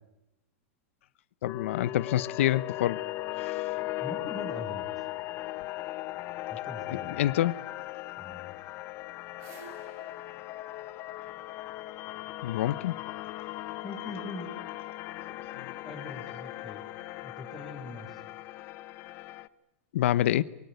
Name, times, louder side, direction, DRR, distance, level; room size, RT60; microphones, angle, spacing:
voice 1, 1.4-3.0 3.4-3.7 7.2-7.6 12.4-13.3 15.4-15.5 19.9-20.4, left 13 dB, 75° left, 0.9 m, -27 dB
sound 1, 1.5-19.5, left 17 dB, 35° left, 1.0 m, -38 dB
voice 2, 4.0-5.1 6.5-7.3 8.2-8.5 13.8-14.5 15.8-16.8 17.2-18.2, left 2 dB, ahead, 5.6 m, -42 dB
sound 2, 8.9-12.0, right 6 dB, 40° right, 6.3 m, -54 dB
24.0 x 23.0 x 9.5 m
supercardioid pair, 150°, 7 cm